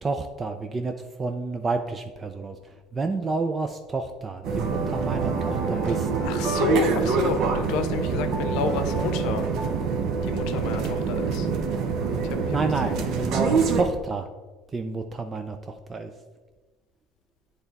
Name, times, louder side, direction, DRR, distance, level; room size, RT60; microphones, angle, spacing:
voice 1, 0.0-6.1 12.5-14.3 14.7-16.1, right 3 dB, 25° right, 7 dB, 0.4 m, -29 dB
sound 1, 4.4-13.8, right 5 dB, 60° right, 0.7 m, -25 dB
voice 2, 5.9-9.5 10.2-11.5 12.2-12.6 12.8-13.0, left 6 dB, 70° left, 8 dB, 0.6 m, -30 dB
8.0 x 3.3 x 4.0 m, 1.3 s
supercardioid pair, 115°, 0 cm